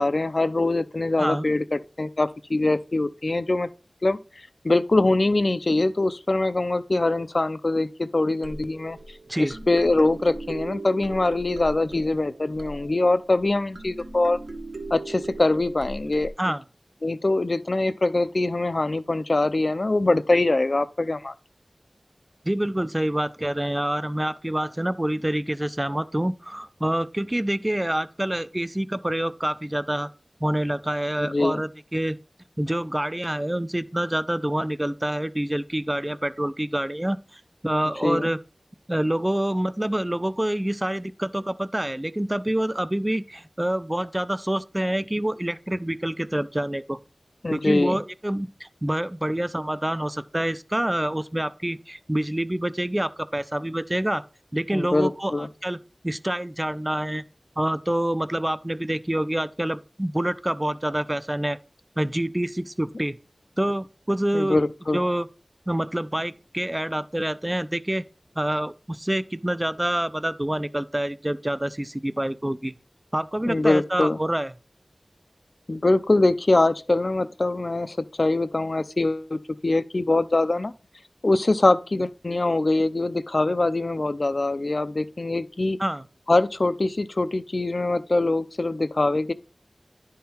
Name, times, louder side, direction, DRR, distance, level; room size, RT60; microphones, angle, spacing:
voice 1, 0.0-3.7 4.0-4.2 4.6-9.0 9.4-14.4 14.9-16.3 17.0-21.3 31.2-31.6 38.0-38.3 47.4-48.0 54.7-55.5 64.3-65.0 73.4-74.2 75.7-80.7 81.2-85.8 86.3-89.3, left 2 dB, 60° left, 0.4 m, -23 dB
sound 1, 8.4-16.3, right 2 dB, 70° right, 0.8 m, -39 dB
voice 2, 22.4-30.1 30.4-32.2 32.6-38.4 38.9-47.0 47.5-54.2 54.5-55.8 56.0-57.2 57.6-61.6 62.0-63.2 63.6-64.6 64.9-65.3 65.7-68.1 68.4-72.7 73.1-74.5 85.8-86.0, right 1 dB, 20° right, 0.4 m, -27 dB
10.5 x 3.7 x 4.3 m
wide cardioid pair, 60°, 0 cm